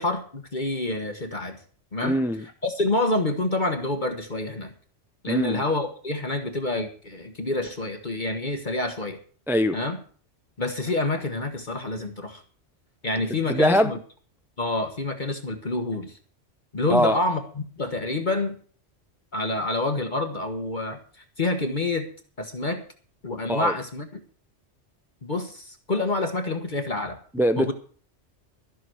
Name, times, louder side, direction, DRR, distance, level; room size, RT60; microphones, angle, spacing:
voice 1, 0.0-1.6 1.9-2.2 2.6-4.7 5.2-9.2 9.7-10.0 10.6-12.4 13.0-14.0 14.6-16.2 16.7-18.5 19.3-22.1 22.4-22.8 23.2-24.1 25.2-27.2 27.6-27.7, left 2 dB, 40° left, 1.4 m, -27 dB
voice 2, 2.0-2.4 5.3-5.6 9.5-9.8 13.5-13.9 16.9-17.2 23.4-23.7 27.3-27.7, equal, 5° right, 0.3 m, -22 dB
14.5 x 6.2 x 7.7 m
omnidirectional pair, 1.2 m